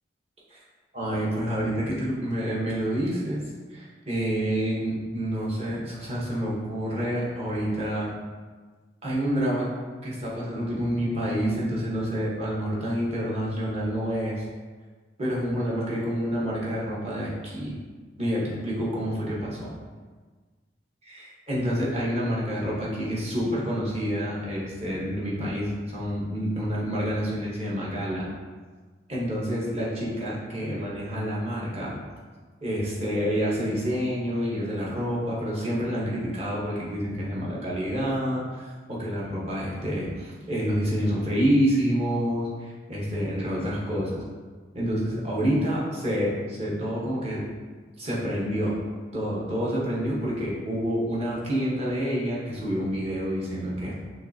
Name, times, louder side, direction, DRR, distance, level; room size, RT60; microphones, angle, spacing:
voice 1, 0.9-3.4 3.7-8.1 9.0-9.7 10.0-14.4 15.2-17.7 18.2-19.7 21.0-28.3 29.1-32.0 32.6-44.2 44.7-47.4 48.0-48.8 49.1-54.0, equal, 35° right, -6 dB, 1.1 m, -28 dB
5.4 x 3.2 x 2.7 m, 1.4 s
head